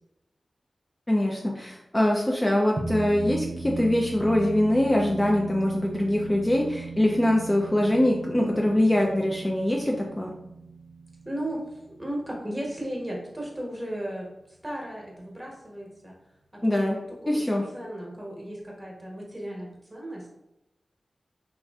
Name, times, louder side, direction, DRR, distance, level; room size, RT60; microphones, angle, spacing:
voice 1, 1.1-10.3 16.6-17.0 17.3-17.6, left 1 dB, 20° left, -1 dB, 0.4 m, -23 dB
sound 1, 2.8-13.5, right 4 dB, 55° right, 0.3 m, -38 dB
voice 2, 11.2-14.3 14.6-16.1 16.5-20.3, right 1 dB, 15° right, -2 dB, 1.0 m, -36 dB
3.0 x 2.5 x 2.3 m, 0.88 s
cardioid pair, 40°, 0 cm